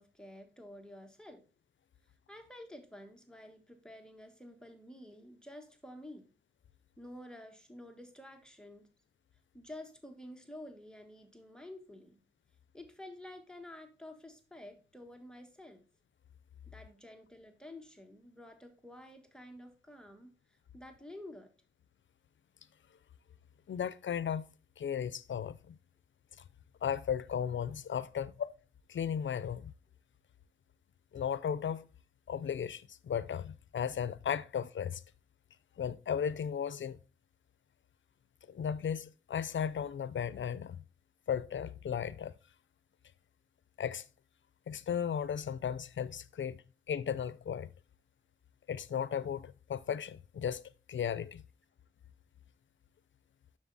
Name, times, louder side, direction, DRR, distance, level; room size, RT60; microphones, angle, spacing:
voice 1, 0.0-1.4 2.3-6.3 7.0-8.9 9.5-12.2 12.7-15.8 16.7-21.5, left 1 dB, 5° left, 1.4 m, -50 dB
voice 2, 23.7-24.5 24.8-25.8 26.8-28.5 28.9-29.7 31.1-31.9 32.3-35.0 35.8-37.0 38.5-40.8 41.3-42.3 43.8-44.0 44.7-47.7 48.7-50.6 50.9-51.4, left 8 dB, 85° left, 0.5 m, -35 dB
7.3 x 6.5 x 4.0 m
wide cardioid pair, 90°, 19 cm